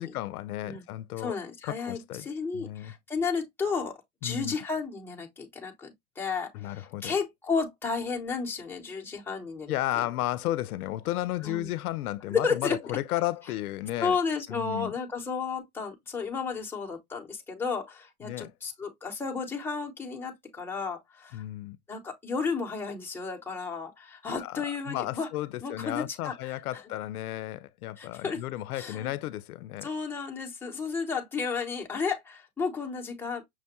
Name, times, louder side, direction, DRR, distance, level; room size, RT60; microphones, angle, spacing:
voice 1, 0.0-1.3 1.6-2.3 2.5-2.9 4.2-4.5 6.5-7.2 9.7-14.2 14.5-14.9 18.2-18.5 21.3-21.8 24.2-29.9, left 15 dB, 80° left, 0.6 m, -33 dB
voice 2, 1.2-10.0 11.4-11.7 12.3-12.8 14.0-21.4 21.9-25.3 25.6-26.5 28.0-28.4 28.8-29.1 29.8-33.4, left 5 dB, 5° left, 0.9 m, -33 dB
6.0 x 2.2 x 2.9 m
hypercardioid pair, 125°, 44 cm